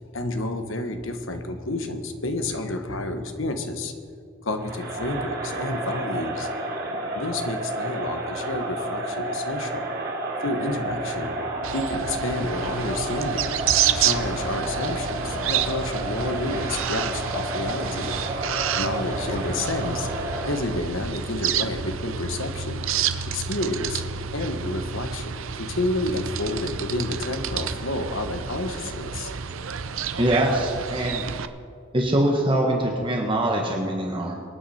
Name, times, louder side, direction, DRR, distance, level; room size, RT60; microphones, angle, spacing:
voice 1, 0.0-3.9 4.4-6.5 7.1-9.8 10.4-11.3 11.7-18.2 18.8-22.8 23.3-24.0 24.3-29.3, left 2 dB, 70° left, 7 dB, 1.3 m, -30 dB
Crowd, 4.6-20.8, right 2 dB, 50° right, 2.8 m, -31 dB
sound 1, 11.6-31.5, right 8 dB, 75° right, 0.7 m, -29 dB
voice 2, 30.2-31.2 31.9-34.3, right 1 dB, 25° right, 0 dB, 1.4 m, -23 dB
23.5 x 9.4 x 4.4 m, 2.2 s
head